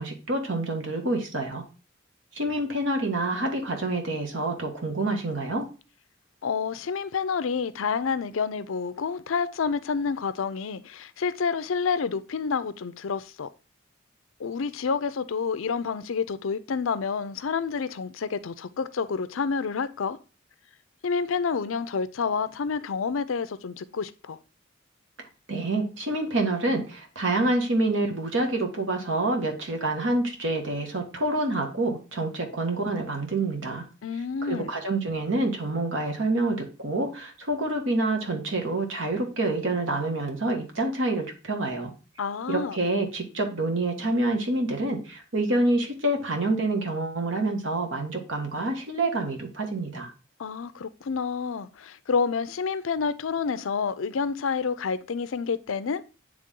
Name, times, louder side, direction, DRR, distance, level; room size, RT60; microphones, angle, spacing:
voice 1, 0.0-1.6 2.3-5.6 25.5-33.8 34.4-41.9 42.5-50.1, right 2 dB, 75° right, 1.7 m, -27 dB
voice 2, 6.4-13.5 14.4-20.2 21.0-24.4 34.0-34.7 42.2-42.8 50.4-56.0, left 5 dB, 85° left, 0.5 m, -29 dB
8.9 x 3.5 x 3.7 m
head